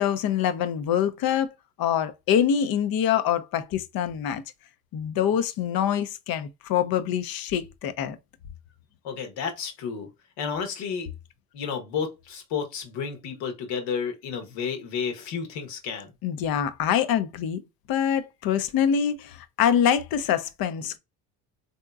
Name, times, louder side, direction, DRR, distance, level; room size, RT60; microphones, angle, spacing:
voice 1, 0.0-1.5 1.8-4.4 4.9-8.2 16.2-17.6 17.9-21.0, left 9 dB, 55° left, 0.6 m, -25 dB
voice 2, 9.0-10.1 10.4-11.1 11.5-16.1, left 6 dB, 75° left, 1.2 m, -31 dB
3.5 x 2.8 x 2.3 m
supercardioid pair, 90°, 43 cm